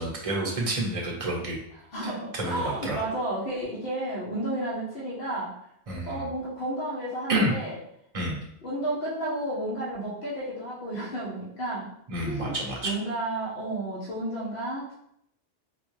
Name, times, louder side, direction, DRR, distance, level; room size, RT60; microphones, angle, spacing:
voice 1, 0.0-1.6 2.0-3.0 5.9-6.3 7.3-7.5 8.1-8.4 12.1-12.9, right 1 dB, 35° right, -1 dB, 0.8 m, -29 dB
voice 2, 1.9-5.5 6.1-7.8 8.6-11.9 12.2-12.6 12.8-14.9, right 1 dB, 60° left, -6 dB, 1.1 m, -32 dB
3.9 x 2.3 x 3.1 m, 0.72 s
omnidirectional pair, 1.1 m